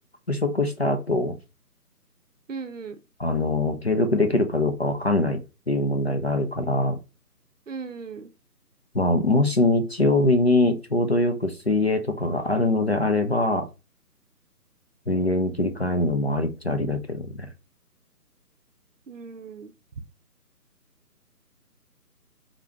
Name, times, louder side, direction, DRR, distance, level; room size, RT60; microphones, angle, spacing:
voice 1, 0.3-1.4 3.2-5.4 5.7-7.0 8.9-13.7 15.1-17.4, left 2 dB, 45° left, 0.4 m, -23 dB
voice 2, 2.5-3.0 7.7-8.3 19.1-19.7, right 5 dB, 55° right, 0.6 m, -37 dB
3.7 x 2.7 x 3.3 m
figure-of-eight pair, 150°, 47 cm